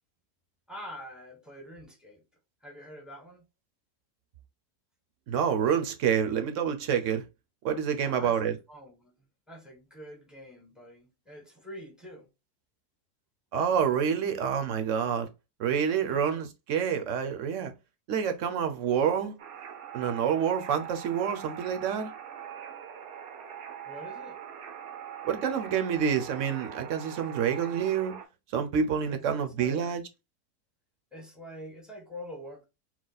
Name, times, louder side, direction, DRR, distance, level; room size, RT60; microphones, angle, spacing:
voice 1, 0.7-2.2 2.6-3.5 8.0-9.1 9.5-12.3 16.0-16.4 19.0-19.1 23.8-24.4 27.6-27.9 29.1-29.9 31.1-32.6, equal, ahead, 1.0 m, -46 dB
voice 2, 5.3-7.2 7.6-8.5 13.5-15.3 15.6-17.7 18.1-19.3 19.9-22.1 25.2-28.2 28.5-30.0, right 7 dB, 60° right, 0.9 m, -28 dB
sound 1, 19.4-28.2, right 9 dB, 90° right, 1.3 m, -42 dB
4.6 x 2.2 x 4.0 m
omnidirectional pair, 1.6 m